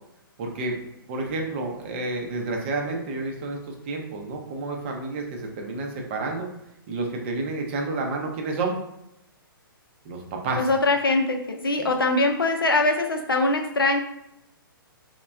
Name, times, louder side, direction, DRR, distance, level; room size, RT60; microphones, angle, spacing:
voice 1, 0.4-0.8 1.1-6.5 6.9-8.7 10.0-10.6 11.8-11.9, right 3 dB, 30° right, 1 dB, 0.5 m, -30 dB
voice 2, 10.6-14.0, left 2 dB, 75° left, 4 dB, 0.5 m, -22 dB
4.1 x 2.1 x 2.3 m, 0.83 s
figure-of-eight pair, 125°, 12 cm